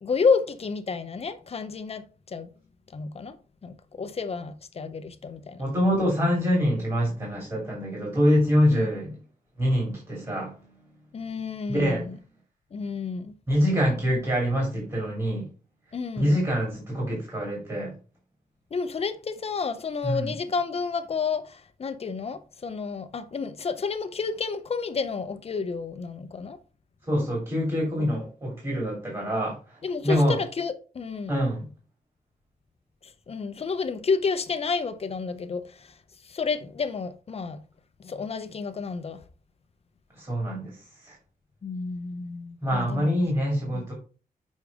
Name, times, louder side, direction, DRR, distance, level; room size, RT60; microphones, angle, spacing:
voice 1, 0.0-2.5 2.9-3.4 3.6-5.6 8.7-8.9 11.1-12.1 12.7-13.3 15.9-16.3 18.7-26.6 28.0-28.2 29.8-31.3 33.3-35.9 36.3-37.6 38.0-39.2 41.6-43.2 43.7-43.8, left 5 dB, 40° left, 0.7 m, -30 dB
voice 2, 5.6-9.2 9.6-10.5 11.7-12.0 13.5-15.5 16.2-17.9 20.0-20.3 27.1-29.5 30.0-30.4 31.3-31.7 40.2-40.8 41.0-41.2 42.6-43.9, equal, 25° right, 2.6 m, -25 dB
6.3 x 5.3 x 3.5 m
wide cardioid pair, 150°, 15 cm